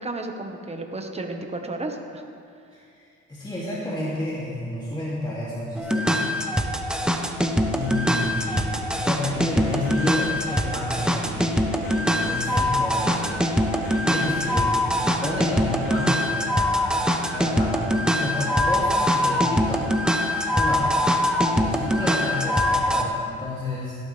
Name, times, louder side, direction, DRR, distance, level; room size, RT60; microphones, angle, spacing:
voice 1, 0.0-2.2, right 2 dB, 20° right, 3 dB, 1.4 m, -32 dB
voice 2, 2.7-6.2 7.4-19.9 20.5-21.0 21.4-24.0, left 1 dB, 15° left, -8 dB, 2.8 m, -31 dB
sound 1, 5.8-23.0, equal, 5° right, 1.0 m, -23 dB
sound 2, 8.2-16.2, left 2 dB, 50° left, 3.3 m, -40 dB
16.5 x 12.0 x 3.5 m, 2.4 s
cardioid pair, 90°, 30 cm